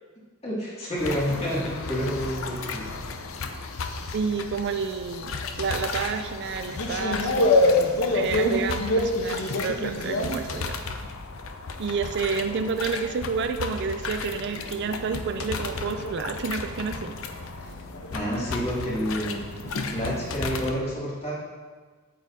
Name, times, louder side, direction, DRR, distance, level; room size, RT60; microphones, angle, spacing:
voice 1, 0.4-2.8 17.6-17.7 18.1-19.4 19.8-21.3, equal, 30° left, -6 dB, 2.3 m, -29 dB
sound 1, 1.0-20.7, left 4 dB, 70° left, 0.6 m, -35 dB
voice 2, 4.1-7.6 8.1-10.8 11.8-17.2, right 5 dB, 55° right, 8 dB, 0.4 m, -29 dB
sound 2, 6.1-11.3 11.6-20.6, left 2 dB, 85° left, 0.9 m, -28 dB
8.8 x 8.5 x 2.7 m, 1.4 s
head